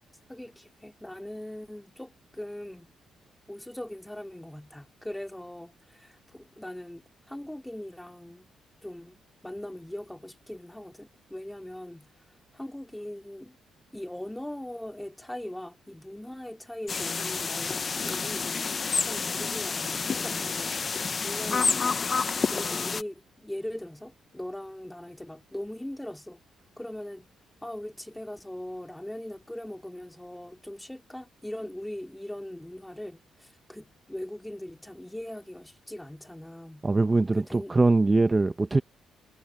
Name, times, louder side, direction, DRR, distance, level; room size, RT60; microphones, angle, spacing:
voice 1, 0.3-2.9 3.5-8.5 8.8-12.1 12.5-13.6 13.9-18.5 19.0-20.9 21.2-26.4 26.8-27.3 27.6-36.9 37.3-37.8, left 1 dB, 5° left, 3.0 m, -40 dB
sound 1, 16.9-23.0, left 5 dB, 40° left, 0.6 m, -29 dB
voice 2, 36.8-38.8, right 3 dB, 20° right, 0.7 m, -22 dB
cardioid pair, 90°, 0 cm